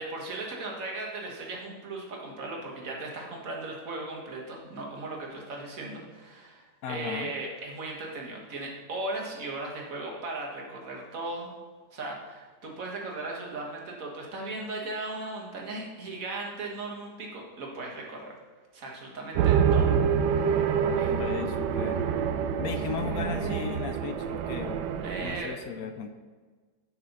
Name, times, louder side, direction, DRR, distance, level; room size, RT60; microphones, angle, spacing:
voice 1, 0.0-11.5 11.9-18.3 18.7-19.9 20.3-20.5 20.9-21.1 25.0-25.6, right 2 dB, 50° right, -1 dB, 1.8 m, -37 dB
voice 2, 6.8-7.3 21.1-22.1 22.6-24.8 25.2-26.1, left 7 dB, 70° left, 8 dB, 0.9 m, -36 dB
sound 1, 19.3-25.4, right 7 dB, 75° right, 1.2 m, -26 dB
7.4 x 6.0 x 5.4 m, 1.4 s
omnidirectional pair, 1.9 m